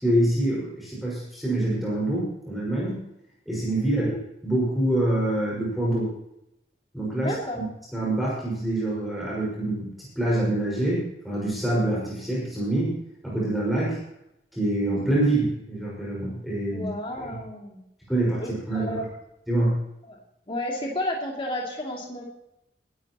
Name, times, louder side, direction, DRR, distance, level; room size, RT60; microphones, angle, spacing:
voice 1, 0.0-3.0 3.5-4.2 4.4-6.1 6.9-7.6 7.9-9.9 10.2-12.9 13.2-14.0 14.5-16.9 17.2-17.4 18.1-19.0 19.5-19.8, right 1 dB, ahead, -6 dB, 5.5 m, -25 dB
voice 2, 7.2-7.6 16.7-17.8 18.4-19.1 20.0-20.2 20.5-22.2, left 1 dB, 30° left, -2 dB, 2.8 m, -32 dB
20.0 x 12.5 x 3.1 m, 0.82 s
head